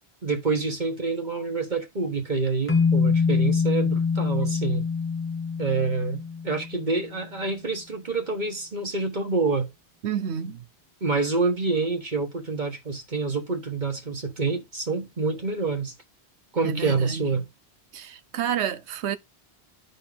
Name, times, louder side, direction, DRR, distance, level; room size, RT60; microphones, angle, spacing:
voice 1, 0.2-4.8 5.6-9.7 11.0-15.9 16.5-17.5, right 3 dB, 45° right, 1.6 m, -27 dB
sound 1, 2.7-7.0, left 5 dB, 10° left, 0.9 m, -25 dB
voice 2, 10.0-10.6 16.6-17.2 17.9-19.2, right 8 dB, 85° right, 1.0 m, -29 dB
11.5 x 4.3 x 3.5 m
omnidirectional pair, 1.1 m